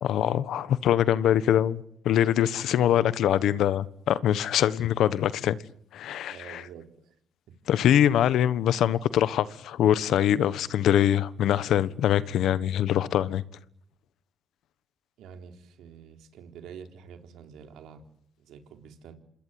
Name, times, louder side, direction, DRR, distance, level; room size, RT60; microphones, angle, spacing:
voice 1, 0.0-5.6 5.9-6.6 7.7-13.4, left 10 dB, 75° left, 1.3 m, -23 dB
voice 2, 6.3-7.1 7.5-7.6 15.2-18.0 18.4-19.1, right 7 dB, 85° right, 4.0 m, -47 dB
27.5 x 21.0 x 9.6 m
cardioid pair, 90°, 0 cm